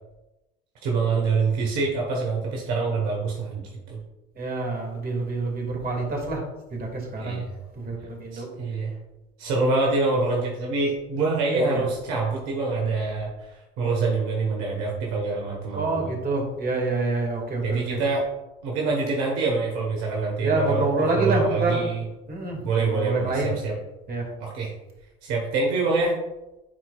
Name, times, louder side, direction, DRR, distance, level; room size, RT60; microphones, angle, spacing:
voice 1, 0.8-3.6 3.9-4.0 7.2-7.5 8.3-8.9 9.4-16.1 17.6-18.3 18.6-22.0 22.6-23.8 24.4-24.7 25.2-26.2, right 3 dB, 60° right, -1 dB, 1.3 m, -25 dB
voice 2, 4.4-6.4 6.7-7.4 7.8-8.5 11.5-11.8 15.7-18.0 20.4-21.8 22.3-23.5 24.1-24.3, right 3 dB, 30° right, 0 dB, 2.1 m, -27 dB
10.5 x 4.4 x 2.4 m, 1.0 s
figure-of-eight pair, 60°, 31 cm